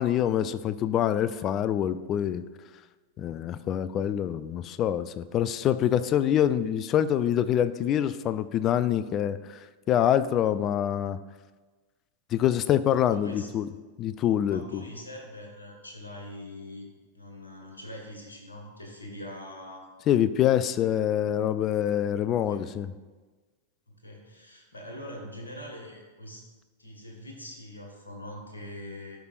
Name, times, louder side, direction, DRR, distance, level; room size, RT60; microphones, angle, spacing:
voice 1, 0.0-2.4 3.2-9.6 9.9-11.2 12.3-13.7 14.0-14.8 20.1-22.9, left 10 dB, 30° left, 14 dB, 0.3 m, -25 dB
voice 2, 13.1-13.5 14.4-16.9 17.1-19.9 22.5-22.6 23.9-26.4 26.8-29.2, left 1 dB, 80° left, 0 dB, 1.5 m, -43 dB
12.5 x 5.0 x 2.4 m, 1.3 s
figure-of-eight pair, 90°, 0 cm